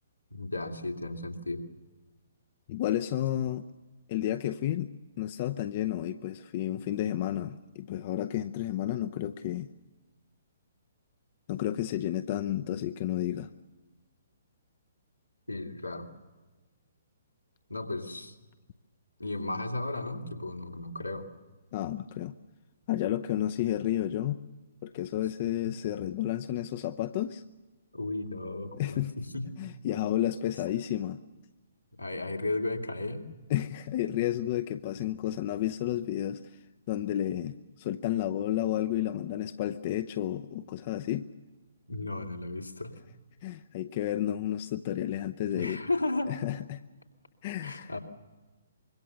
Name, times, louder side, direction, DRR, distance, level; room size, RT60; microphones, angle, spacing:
voice 1, 0.3-1.7 15.5-16.1 17.7-18.4 19.2-21.3 27.9-29.6 32.0-33.2 41.9-43.0 45.5-46.4 47.6-48.0, left 2 dB, 85° left, 1 dB, 2.8 m, -34 dB
voice 2, 2.7-3.6 4.1-4.9 5.2-9.7 11.5-13.5 21.7-22.4 22.9-24.4 24.8-27.4 28.8-29.1 29.6-31.2 33.5-36.4 36.9-41.2 43.4-45.8 46.3-46.8 47.4-47.9, left 12 dB, 35° left, 9 dB, 0.7 m, -31 dB
25.5 x 23.0 x 6.8 m, 1.2 s
figure-of-eight pair, 125°, 0 cm